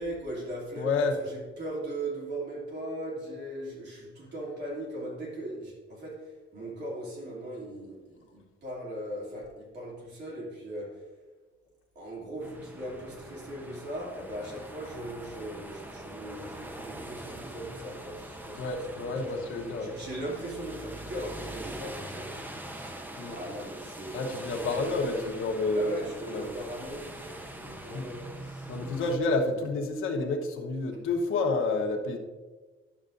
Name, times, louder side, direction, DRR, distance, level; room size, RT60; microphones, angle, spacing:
voice 1, 0.0-11.1 11.9-22.4 22.7-23.0 23.2-25.3 25.7-28.7, right 1 dB, 55° right, -3 dB, 2.7 m, -39 dB
voice 2, 0.8-1.1 18.6-19.9 23.2-23.4 24.1-25.9 26.3-26.5 27.9-28.1 28.7-32.2, left 3 dB, 75° left, 4 dB, 1.1 m, -29 dB
sound 1, 12.4-29.2, right 1 dB, 10° right, 0.5 m, -43 dB
11.0 x 6.7 x 2.6 m, 1.3 s
cardioid pair, 165°, 21 cm